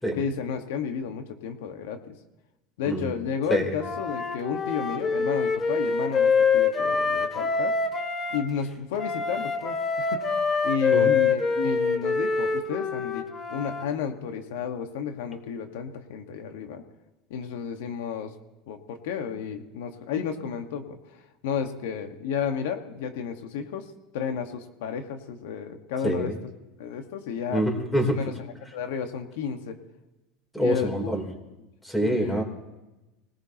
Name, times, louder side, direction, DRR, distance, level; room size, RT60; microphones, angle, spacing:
voice 1, 0.1-2.1 2.8-7.7 8.3-10.4 10.6-16.8 17.3-18.3 18.7-21.0 21.4-23.8 24.1-26.3 26.8-27.6 28.1-28.3 28.7-29.8 30.6-31.1 32.0-32.4, left 7 dB, 80° left, 6 dB, 1.5 m, -32 dB
Wind instrument woodwind instrument, 3.8-8.4 9.0-13.8, left 5 dB, 25° left, 1.5 m, -25 dB
voice 2, 26.0-26.4 27.5-28.2 30.5-31.2 31.8-32.4, equal, 5° left, 3 dB, 3.4 m, -25 dB
25.0 x 19.0 x 3.0 m, 1.0 s
supercardioid pair, 115°, 0 cm